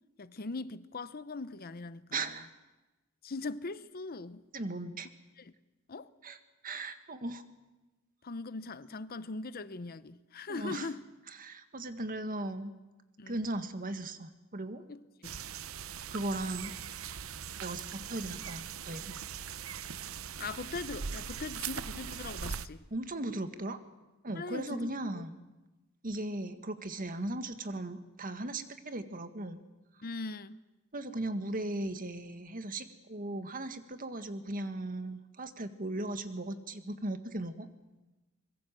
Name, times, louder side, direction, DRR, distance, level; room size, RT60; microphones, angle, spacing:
voice 1, 0.2-2.3 3.2-4.4 5.4-5.5 5.9-6.1 8.2-11.0 13.2-13.4 14.9-15.4 20.4-22.8 24.3-25.3 30.0-30.6, left 3 dB, 45° left, 0.8 m, -41 dB
voice 2, 2.1-2.5 4.5-5.1 6.2-6.4 6.6-7.4 10.5-10.9 11.4-12.7 13.3-14.8 16.1-19.2 22.9-23.8 24.2-25.3 26.0-29.6 30.9-37.7, right 2 dB, 40° right, 1.7 m, -37 dB
sound 1, 15.2-22.7, right 7 dB, 80° right, 0.8 m, -41 dB
25.0 x 22.0 x 7.6 m
head